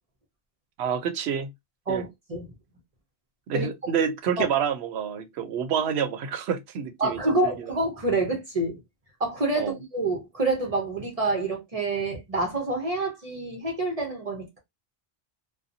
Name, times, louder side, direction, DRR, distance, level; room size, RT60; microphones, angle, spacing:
voice 1, 0.8-1.5 1.9-2.0 3.5-7.7 9.6-9.7, right 7 dB, 90° right, 0.8 m, -28 dB
voice 2, 1.9-2.4 3.5-3.7 4.4-4.5 7.0-8.8 9.2-14.6, right 2 dB, 40° right, 0.8 m, -27 dB
2.7 x 2.2 x 2.5 m
omnidirectional pair, 1.0 m